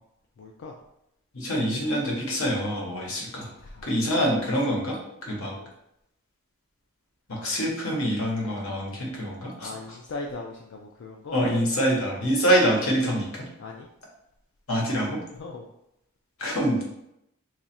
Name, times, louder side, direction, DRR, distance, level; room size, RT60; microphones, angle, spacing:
voice 1, 0.4-0.7 3.6-3.8 4.1-4.3 5.5-5.7 9.6-11.4 13.6-13.9 15.4-15.7, left 3 dB, 60° left, 0 dB, 0.4 m, -39 dB
voice 2, 1.3-3.5 3.8-5.0 5.3-5.5 7.3-9.7 11.3-13.5 14.7-15.2 16.4-16.8, equal, 80° left, -2 dB, 1.1 m, -25 dB
3.0 x 2.5 x 4.2 m, 0.82 s
head